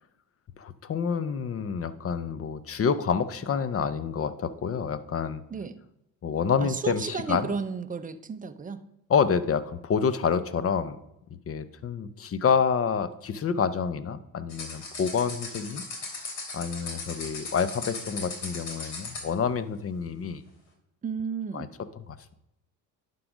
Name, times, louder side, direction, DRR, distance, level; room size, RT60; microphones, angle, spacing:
voice 1, 0.6-5.4 6.2-7.5 9.1-11.0 11.5-15.8 16.5-20.4 21.5-21.7 22.1-22.2, left 6 dB, 30° left, 15 dB, 0.6 m, -28 dB
voice 2, 5.5-5.8 6.6-8.8 21.0-21.7, right 6 dB, 15° right, 10 dB, 0.6 m, -33 dB
sound 1, 14.5-19.3, left 3 dB, 65° left, 2.9 m, -38 dB
11.0 x 3.9 x 5.1 m, 0.85 s
supercardioid pair, 75°, 50 cm